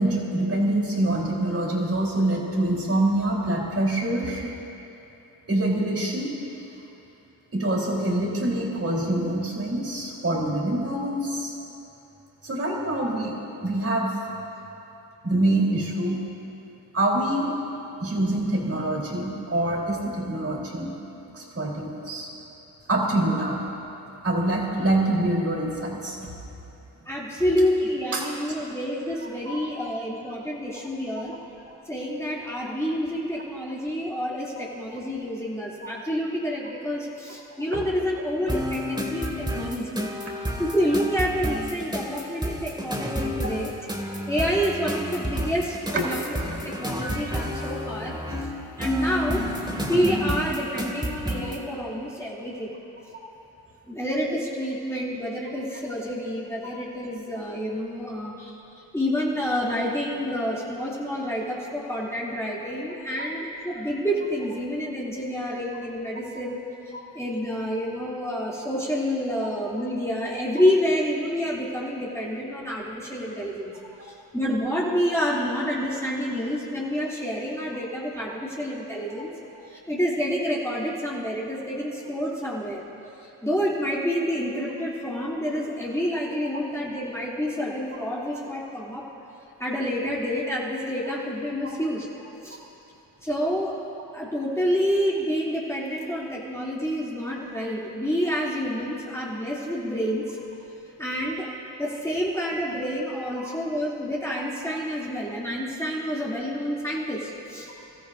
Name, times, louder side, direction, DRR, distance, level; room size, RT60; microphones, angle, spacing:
voice 1, 0.0-4.6 5.5-6.3 7.5-11.5 12.4-14.1 15.2-16.3 16.9-17.5 18.0-20.9 21.3-22.3 22.9-23.6 24.2-26.3 28.1-28.3 29.5-29.6 35.8-35.9 37.7-37.8 45.9-46.1 63.2-63.3 91.6-91.7 103.4-103.5, right 1 dB, 30° right, -2 dB, 3.9 m, -25 dB
voice 2, 27.1-31.3 31.9-40.1 40.6-43.7 44.3-46.4 46.6-48.1 48.8-49.4 49.9-52.7 53.9-58.5 58.9-66.6 67.1-73.7 74.0-79.3 79.9-82.8 83.2-89.0 89.6-92.1 92.4-92.6 93.2-93.8 94.1-100.4 101.0-101.5 101.8-107.7, equal, 5° left, -6 dB, 2.9 m, -28 dB
sound 1, 38.5-51.6, equal, 10° right, 2.3 m, -30 dB
24.5 x 13.5 x 2.7 m, 2.9 s
supercardioid pair, 50°, 43 cm